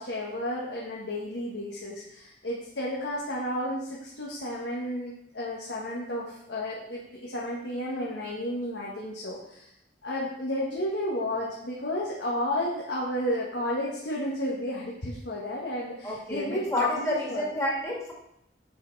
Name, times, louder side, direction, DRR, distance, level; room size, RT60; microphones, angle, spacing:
voice 1, 0.0-9.7 10.0-17.5, left 1 dB, 75° left, -4 dB, 1.4 m, -32 dB
voice 2, 16.0-18.1, left 1 dB, 15° left, -4 dB, 2.1 m, -29 dB
6.8 x 5.3 x 4.6 m, 0.77 s
head